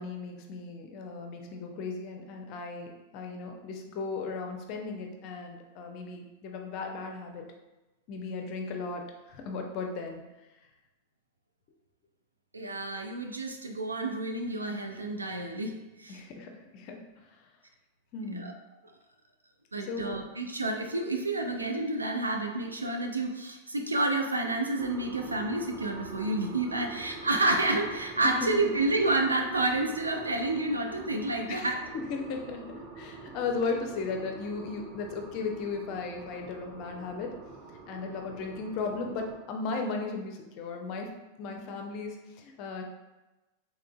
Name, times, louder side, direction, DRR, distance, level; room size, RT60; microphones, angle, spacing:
voice 1, 0.0-7.4 8.1-10.2 16.1-17.5 18.1-18.5 19.8-20.3 28.4-28.5 31.5-37.3 37.9-41.1 41.4-42.8, left 4 dB, 40° left, 3 dB, 0.5 m, -36 dB
voice 2, 12.5-15.7 16.0-16.2 18.3-18.5 19.7-31.8, right 2 dB, 80° right, 3 dB, 0.4 m, -29 dB
sound 1, 24.8-39.4, right 3 dB, 30° right, 0.6 m, -45 dB
3.7 x 3.1 x 2.2 m, 1.1 s
figure-of-eight pair, 90°, 0 cm